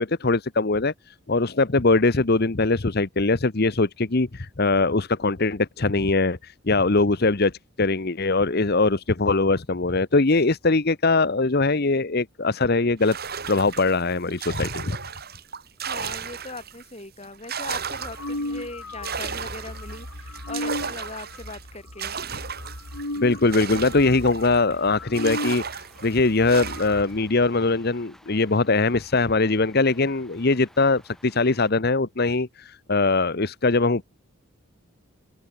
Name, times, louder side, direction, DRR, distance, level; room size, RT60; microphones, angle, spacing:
voice 1, 0.0-13.2 13.5-15.0 23.2-34.0, left 3 dB, 45° left, 1.0 m, -22 dB
sound 1, 13.0-16.9 17.2-24.7 25.1-27.1, right 6 dB, 45° right, 2.8 m, -35 dB
voice 2, 15.9-22.2, left 2 dB, 30° left, 4.5 m, -40 dB
sound 2, 17.8-25.6 26.0-26.1 26.3-27.0, left 1 dB, 85° left, 4.4 m, -35 dB
sound 3, 24.7-31.7, equal, ahead, 7.5 m, -54 dB
open air
head